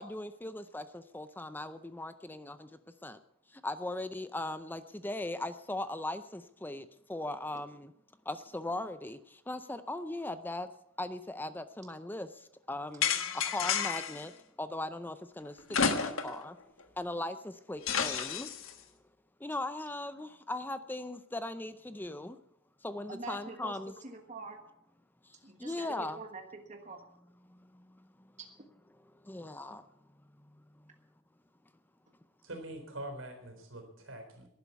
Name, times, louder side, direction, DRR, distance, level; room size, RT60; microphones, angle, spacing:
voice 1, 0.0-2.7 3.0-3.2 3.5-7.9 8.3-10.7 11.0-13.1 13.3-14.3 14.6-15.6 15.9-16.6 17.0-18.5 19.4-22.4 22.8-23.9 25.2-26.2 27.4-28.0 29.2-29.8, left 2 dB, 10° left, 11 dB, 0.5 m, -39 dB
sound 1, 13.0-14.2 15.7-16.4 16.8-16.9 17.9-18.7, left 6 dB, 85° left, 1.4 m, -31 dB
voice 2, 23.1-24.6 25.4-27.0 28.4-28.5, right 3 dB, 35° right, 4 dB, 1.3 m, -45 dB
voice 3, 32.4-34.5, right 1 dB, 80° right, 5 dB, 3.9 m, -44 dB
11.5 x 11.0 x 8.2 m, 0.77 s
head